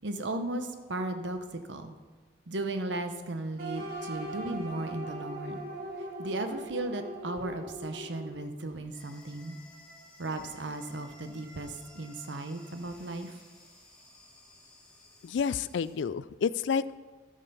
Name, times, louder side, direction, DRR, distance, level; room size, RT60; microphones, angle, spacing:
voice 1, 0.0-1.9 2.5-5.6 6.2-9.6 10.2-13.4, right 2 dB, 75° right, 8 dB, 0.9 m, -36 dB
sound 1, 3.6-8.5, right 1 dB, 50° right, 2.3 m, -40 dB
sound 2, 8.9-15.9, left 1 dB, 5° left, 1.7 m, -55 dB
voice 2, 15.2-17.0, left 6 dB, 75° left, 17 dB, 0.3 m, -30 dB
13.0 x 6.6 x 5.5 m, 1.4 s
head